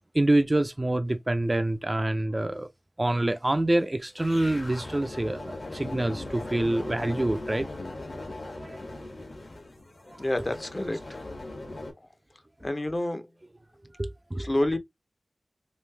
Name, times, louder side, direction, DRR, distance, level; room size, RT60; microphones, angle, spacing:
voice 1, 0.1-2.7 3.0-7.7 8.4-8.8 14.0-14.5, right 1 dB, 25° right, 0.4 m, -26 dB
sound 1, 4.2-11.9, left 2 dB, 55° left, 1.3 m, -39 dB
voice 2, 10.2-11.2 12.6-13.3 14.4-14.8, left 1 dB, 30° left, 0.6 m, -28 dB
3.1 x 2.8 x 3.3 m
wide cardioid pair, 55°, 0 cm